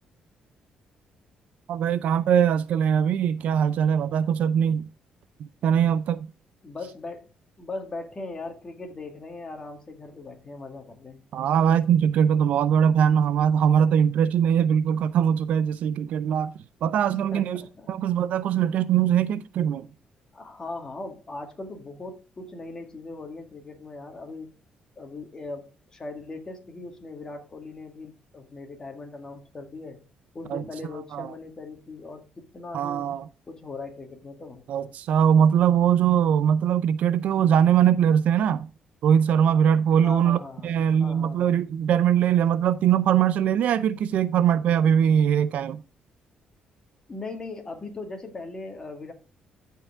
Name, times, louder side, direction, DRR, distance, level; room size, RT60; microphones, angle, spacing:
voice 1, 1.7-4.9 5.4-6.3 11.3-16.5 16.8-17.6 17.9-19.9 30.5-30.6 31.1-31.3 32.7-33.3 34.7-38.7 39.0-45.8, right 8 dB, 70° right, 0.5 m, -21 dB
voice 2, 6.6-7.3 7.6-11.2 17.0-17.9 20.3-24.5 25.0-30.0 30.3-33.2 33.5-34.7 40.0-40.7 41.0-41.6 45.6-45.7 47.1-49.1, left 3 dB, 30° left, 2.1 m, -39 dB
14.0 x 4.7 x 3.6 m
cardioid pair, 110°, 3 cm